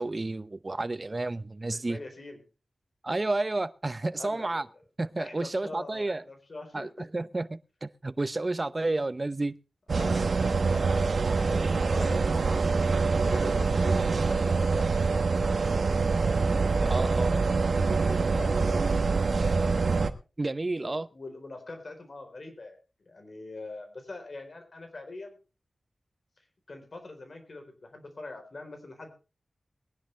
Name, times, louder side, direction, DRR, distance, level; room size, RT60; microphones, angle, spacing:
voice 1, 0.0-2.0 3.0-4.7 5.0-6.2 6.7-9.5 16.9-17.3 20.4-21.1, right 2 dB, 35° right, 0.8 m, -31 dB
voice 2, 1.7-2.4 4.1-4.7 5.2-7.1 9.9-11.2 11.4-14.9 15.4-15.9 16.7-19.9 20.8-22.8 23.1-25.4 26.7-29.1, left 2 dB, 55° left, 4.0 m, -43 dB
sound 1, 9.9-20.1, right 4 dB, 70° right, 1.1 m, -25 dB
21.5 x 10.5 x 3.3 m
wide cardioid pair, 75°, 0 cm